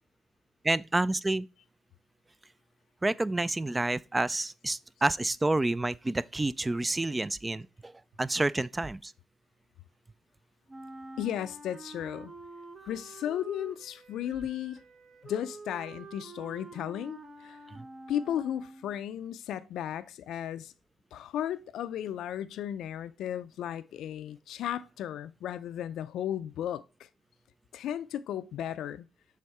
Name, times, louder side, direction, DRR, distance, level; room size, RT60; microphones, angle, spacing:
voice 1, 0.6-1.5 3.0-9.1 17.7-17.8, right 2 dB, 15° right, 0.3 m, -29 dB
Wind instrument woodwind instrument, 10.7-19.0, right 3 dB, 35° right, 1.0 m, -47 dB
voice 2, 11.2-12.3 12.8-14.8 15.2-17.6 18.1-20.7 21.1-27.1 27.7-29.1, left 10 dB, 80° left, 0.4 m, -35 dB
6.5 x 3.5 x 4.2 m
cardioid pair, 90°, 0 cm